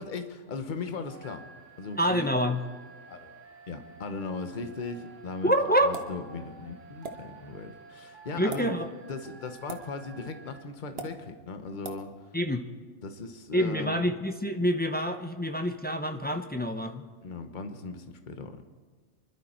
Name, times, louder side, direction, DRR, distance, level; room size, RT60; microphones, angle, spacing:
voice 1, 0.0-1.4 1.8-2.2 3.1-3.4 3.7-5.5 5.8-12.1 13.0-14.0 17.2-18.5, left 4 dB, 40° left, 7 dB, 1.1 m, -38 dB
sound 1, 1.0-10.6, right 4 dB, 65° right, 1.3 m, -51 dB
voice 2, 2.0-2.6 5.4-6.0 8.4-8.9 12.3-12.6 13.5-17.0, equal, 10° left, 5 dB, 0.5 m, -27 dB
sound 2, 5.9-6.2 7.0-7.2 8.4-8.6 9.7-9.9 11.0-11.1 11.8-12.0, right 4 dB, 50° right, 1.3 m, -38 dB
25.5 x 12.0 x 4.4 m, 1.5 s
omnidirectional pair, 1.4 m